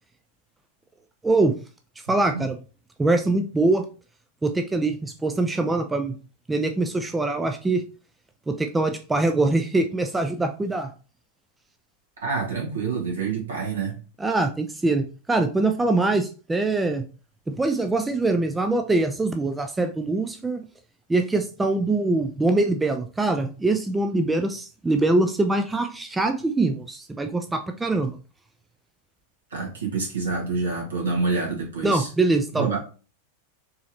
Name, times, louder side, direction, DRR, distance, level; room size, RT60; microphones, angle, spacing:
voice 1, 1.2-1.5 2.1-2.6 3.0-3.8 4.4-6.1 6.5-7.8 8.5-10.9 14.2-17.0 17.5-20.6 21.1-28.1 31.8-32.7, right 2 dB, 10° right, 6 dB, 0.4 m, -23 dB
voice 2, 12.2-14.0 29.5-32.1 32.5-32.8, right 4 dB, 65° right, -2 dB, 1.8 m, -27 dB
4.5 x 3.1 x 2.9 m, 0.36 s
figure-of-eight pair, 90°, 0 cm